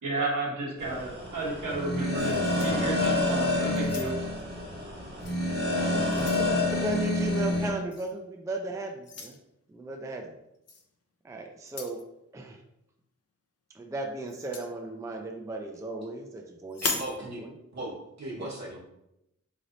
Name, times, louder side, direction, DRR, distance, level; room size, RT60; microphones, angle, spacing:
voice 1, 0.0-4.1, right 2 dB, 85° right, -4 dB, 1.3 m, -32 dB
sound 1, 0.8-7.7, left 2 dB, 35° right, 0.8 m, -28 dB
sound 2, 2.2-3.3 3.8-4.4 5.2-5.4 5.8-6.5 7.9-8.1 9.0-9.4 10.7-10.9 11.6-12.0 14.3-14.7 16.7-17.2, left 4 dB, 55° left, 0.5 m, -37 dB
voice 2, 5.7-9.4 9.7-10.3 11.2-12.0 12.3-12.6 13.7-16.8 17.2-17.5 18.4-18.5, right 2 dB, 10° right, 2 dB, 0.4 m, -36 dB
voice 3, 16.8-17.4 17.7-18.8, right 1 dB, 65° right, -5 dB, 1.4 m, -37 dB
3.9 x 3.2 x 2.6 m, 0.83 s
wide cardioid pair, 115°, 30 cm